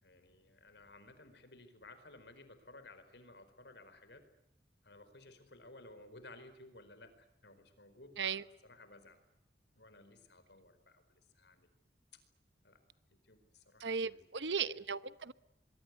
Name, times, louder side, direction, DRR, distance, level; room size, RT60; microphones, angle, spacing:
voice 1, 0.0-4.2 4.8-9.2 9.8-11.7 12.1-12.2 12.6-12.8 13.2-14.9, left 2 dB, 75° left, 4.5 m, -57 dB
voice 2, 13.8-15.3, right 6 dB, 85° right, 0.9 m, -36 dB
24.0 x 22.5 x 9.5 m
head